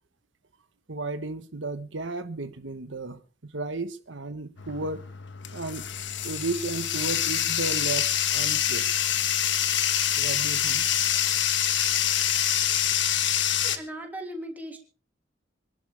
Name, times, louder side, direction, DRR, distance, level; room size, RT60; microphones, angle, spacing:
voice 1, 0.9-3.2 3.5-5.0 5.5-5.8 6.2-8.8 10.2-10.9 11.2-11.3 12.1-12.5 13.0-13.5, right 3 dB, 75° right, 1.3 m, -34 dB
Bathtub (filling or washing), 4.6-13.8, left 10 dB, 70° left, 1.5 m, -26 dB
voice 2, 13.6-14.8, right 1 dB, 10° right, 3.2 m, -37 dB
26.0 x 11.5 x 3.5 m
head